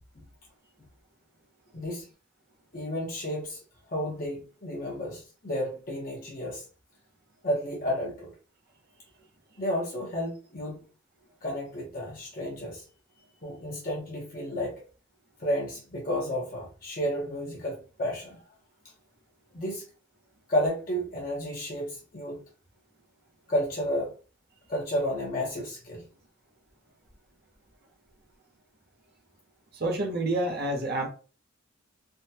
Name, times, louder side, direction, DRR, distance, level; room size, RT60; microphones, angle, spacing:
voice 1, 1.7-2.1 2.7-3.6 3.9-6.6 7.4-8.3 9.6-10.9 11.4-12.8 13.4-14.8 15.4-18.4 19.5-19.8 20.5-22.4 23.5-24.1 24.7-26.0, equal, 40° left, 0.8 m, -31 dB
voice 2, 29.7-31.1, right 1 dB, 50° right, 0.7 m, -28 dB
3.4 x 2.1 x 2.7 m
head